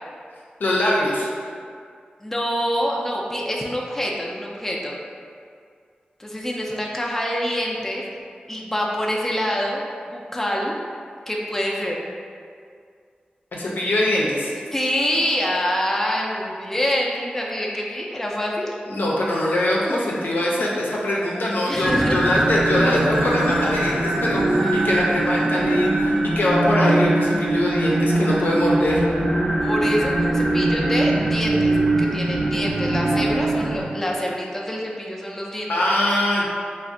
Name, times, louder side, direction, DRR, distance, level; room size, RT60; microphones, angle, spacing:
voice 1, 0.6-1.3 13.5-14.5 18.9-29.0 35.7-36.5, left 1 dB, 80° left, -4 dB, 0.5 m, -22 dB
voice 2, 2.2-5.0 6.2-8.0 8.5-9.8 10.1-10.7 11.3-12.0 14.7-18.7 21.7-22.3 24.6-24.9 29.6-31.7 32.0-35.8, equal, 10° left, -3 dB, 0.4 m, -26 dB
sound 1, 21.8-33.8, right 1 dB, 70° right, 0.9 m, -21 dB
2.4 x 2.1 x 3.7 m, 2.2 s
wide cardioid pair, 60°, 3 cm